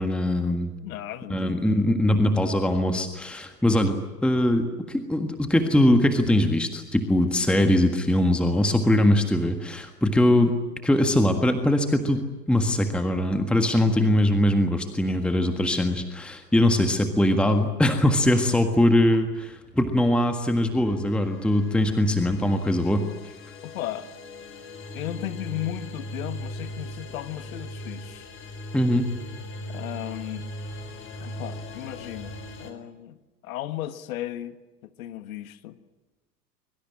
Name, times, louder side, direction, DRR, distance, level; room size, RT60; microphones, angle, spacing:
voice 1, 0.0-0.7 1.3-4.0 4.2-10.5 10.8-23.0 28.7-29.1, left 1 dB, ahead, 6 dB, 1.6 m, -22 dB
voice 2, 0.8-2.6 23.6-24.1 24.9-28.3 29.7-30.5 31.2-33.2 33.4-35.8, left 13 dB, 55° left, 11 dB, 1.7 m, -36 dB
sound 1, 20.5-32.7, left 1 dB, 25° left, 4.5 m, -39 dB
24.5 x 23.5 x 8.7 m, 1.2 s
figure-of-eight pair, 95°, 50 cm